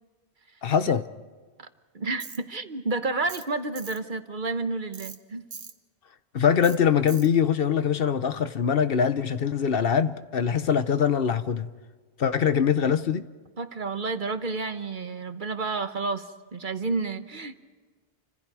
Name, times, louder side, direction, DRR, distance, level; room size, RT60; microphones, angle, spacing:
voice 1, 0.6-1.0 6.3-11.7 12.2-13.3, left 7 dB, 65° left, 1.0 m, -23 dB
voice 2, 1.9-5.4 13.6-17.5, right 3 dB, 50° right, 1.2 m, -30 dB
Tools, 2.2-2.4 3.3-3.5 3.8-4.0 4.9-5.2 5.5-5.7 6.6-6.8 7.1-7.3, right 5 dB, 85° right, 1.6 m, -41 dB
29.0 x 26.0 x 4.9 m
omnidirectional pair, 1.1 m